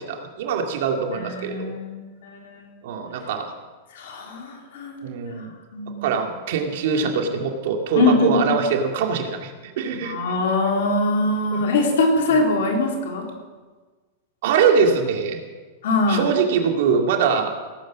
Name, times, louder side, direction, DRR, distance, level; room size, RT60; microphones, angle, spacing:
voice 1, 0.0-1.7 2.8-3.5 5.0-5.5 6.0-10.2 11.5-11.7 12.3-12.4 14.4-15.4 16.1-17.5, right 6 dB, 65° right, 3 dB, 2.2 m, -23 dB
voice 2, 1.1-2.6 3.9-5.0 5.7-6.0 7.0-7.1 8.0-8.5 10.0-13.3 15.8-16.3, left 2 dB, 75° left, 1 dB, 3.7 m, -22 dB
17.5 x 10.0 x 6.2 m, 1.4 s
hypercardioid pair, 120°, 0 cm